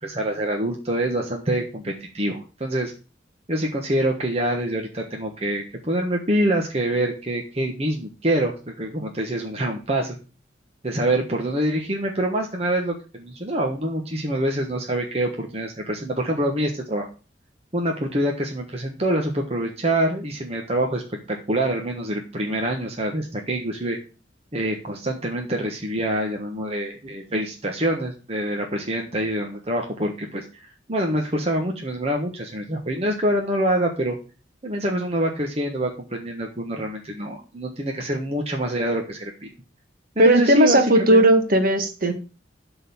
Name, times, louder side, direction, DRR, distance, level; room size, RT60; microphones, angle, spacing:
voice 1, 0.0-2.9 3.5-10.2 10.8-17.1 17.7-21.0 21.3-24.0 24.5-34.2 34.6-39.3 40.1-40.8 41.1-41.2, right 1 dB, 35° right, 1 dB, 1.3 m, -25 dB
voice 2, 40.2-42.1, right 1 dB, 50° right, 6 dB, 1.8 m, -16 dB
12.0 x 4.1 x 7.1 m, 0.34 s
head